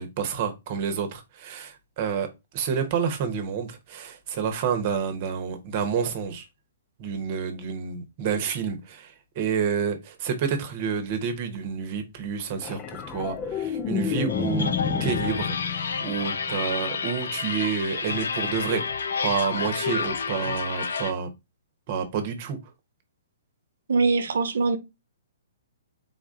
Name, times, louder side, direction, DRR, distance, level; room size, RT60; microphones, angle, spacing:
voice 1, 0.0-2.3 2.5-6.5 7.0-14.7 15.0-18.8 19.2-21.3 21.9-22.6, right 6 dB, 45° right, 1.0 m, -29 dB
sound 1, 12.6-17.1 19.5-19.7, left 7 dB, 25° left, 0.4 m, -30 dB
sound 2, 14.3-21.1, left 5 dB, 75° left, 0.6 m, -30 dB
voice 2, 23.9-24.8, right 4 dB, 70° right, 0.8 m, -22 dB
4.0 x 2.5 x 3.7 m
hypercardioid pair, 130°, 0 cm